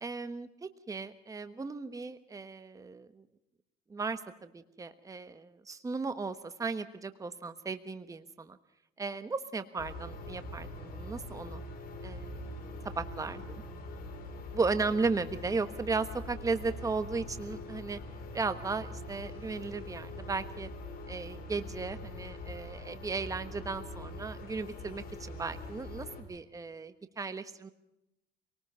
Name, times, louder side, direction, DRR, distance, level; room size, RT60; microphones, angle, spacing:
voice 1, 0.0-3.2 3.9-8.6 9.0-11.6 12.0-12.5 12.8-13.6 14.5-18.0 18.3-20.7 21.1-27.7, right 4 dB, 20° right, 11 dB, 1.2 m, -36 dB
sound 1, 9.8-26.2, left 1 dB, 60° left, 4.9 m, -43 dB
26.0 x 19.5 x 5.6 m, 0.87 s
cardioid pair, 110°, 17 cm